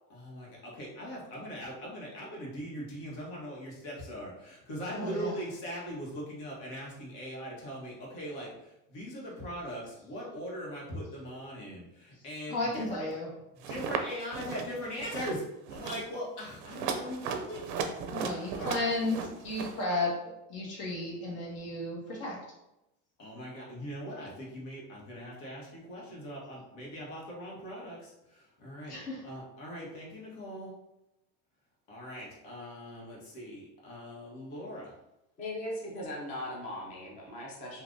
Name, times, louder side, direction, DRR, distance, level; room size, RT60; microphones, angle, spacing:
voice 1, 0.1-13.1 13.7-15.4 15.7-18.8 23.2-28.9 29.2-30.7 31.9-34.9, equal, 85° left, -4 dB, 1.3 m, -41 dB
voice 2, 4.9-5.3 12.5-13.3 18.1-22.4 28.9-29.2, left 2 dB, 65° left, -3 dB, 1.3 m, -33 dB
sound 1, 13.6-14.0 14.3-14.7 15.0-15.4 15.7-16.0 16.6-19.8, right 6 dB, 55° right, 0.4 m, -36 dB
voice 3, 35.4-37.8, left 1 dB, 20° left, -3 dB, 0.4 m, -39 dB
3.5 x 2.6 x 2.5 m, 0.91 s
cardioid pair, 175°, 35 cm